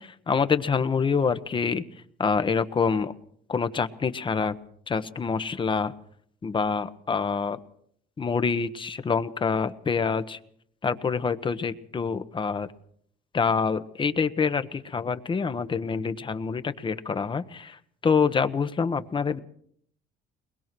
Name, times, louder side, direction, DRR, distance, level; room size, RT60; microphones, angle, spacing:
voice 1, 0.0-1.8 2.2-3.1 3.5-4.6 4.9-5.9 6.4-7.6 8.2-10.4 10.8-12.7 13.3-19.4, left 5 dB, 30° left, 11 dB, 1.1 m, -26 dB
22.0 x 20.5 x 6.1 m, 0.64 s
cardioid pair, 110°, 17 cm